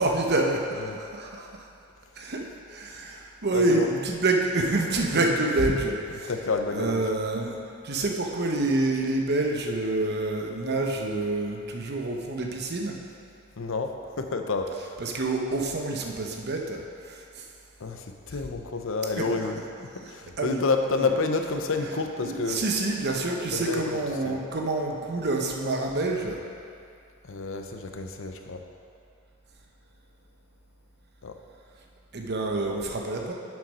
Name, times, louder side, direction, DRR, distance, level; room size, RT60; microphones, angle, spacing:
voice 1, 0.0-1.5 2.2-6.0 6.7-7.6 7.8-13.0 15.0-17.5 19.2-19.3 20.4-20.6 20.9-21.1 22.2-26.4 32.1-33.3, right 2 dB, 50° right, 1 dB, 0.9 m, -27 dB
voice 2, 3.5-3.9 5.7-5.8 6.1-7.0 13.6-15.0 17.8-22.6 23.5-24.4 27.2-28.6 31.2-31.4, left 3 dB, 65° left, 5 dB, 0.6 m, -29 dB
7.0 x 6.5 x 5.5 m, 2.5 s
head